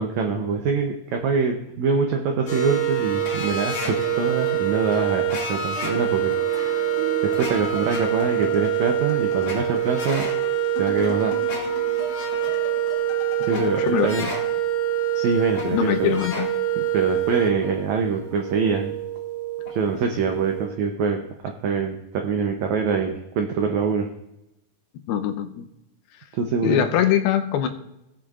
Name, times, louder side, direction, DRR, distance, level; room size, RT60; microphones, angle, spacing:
voice 1, 0.0-6.9 7.2-10.3 10.8-11.4 13.5-14.3 15.1-16.1 16.8-19.0 19.7-24.1 26.3-26.9, right 5 dB, 90° right, 3 dB, 1.6 m, -24 dB
sound 1, 2.5-20.7, right 8 dB, 35° left, 2.8 m, -25 dB
sound 2, 3.6-12.9, right 4 dB, 20° right, 1.4 m, -40 dB
sound 3, 7.3-14.4, left 4 dB, 60° left, 2.4 m, -39 dB
voice 2, 13.5-14.1 15.7-16.5 25.1-25.7 26.6-27.7, left 10 dB, 85° left, 6 dB, 2.7 m, -22 dB
18.0 x 7.7 x 2.4 m, 0.88 s
omnidirectional pair, 4.3 m